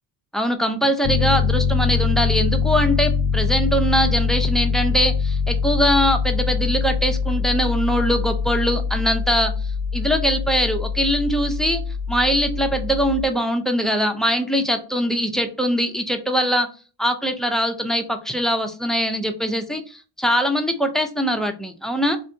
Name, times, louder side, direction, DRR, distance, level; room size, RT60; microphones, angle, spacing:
voice 1, 0.3-9.5 9.9-11.8 12.1-16.7 17.0-22.2, equal, ahead, 7 dB, 0.4 m, -22 dB
Piano, 1.0-13.3, left 5 dB, 50° left, 0.6 m, -23 dB
3.7 x 2.7 x 3.3 m, 0.36 s
cardioid pair, 120°, 49 cm